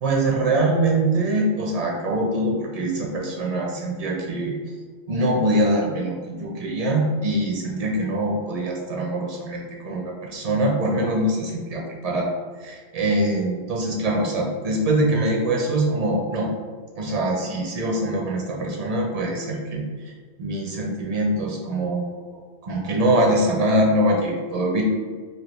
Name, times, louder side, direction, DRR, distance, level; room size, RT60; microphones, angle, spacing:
voice 1, 0.0-4.5 5.1-12.3 12.6-16.5 17.0-19.8 20.4-22.2 22.6-24.8, right 1 dB, 45° right, -1 dB, 0.5 m, -23 dB
3.0 x 2.6 x 3.1 m, 1.5 s
omnidirectional pair, 1.2 m